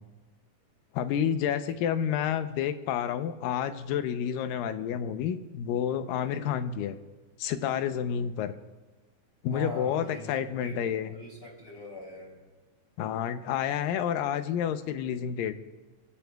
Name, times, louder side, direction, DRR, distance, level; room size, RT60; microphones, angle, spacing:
voice 1, 0.9-7.0 7.4-8.5 9.4-11.1 13.0-15.5, left 9 dB, 90° left, 10 dB, 2.5 m, -29 dB
voice 2, 9.5-10.3 10.6-12.5, left 2 dB, 15° left, -2 dB, 2.9 m, -41 dB
27.0 x 15.5 x 2.3 m, 1.2 s
omnidirectional pair, 3.9 m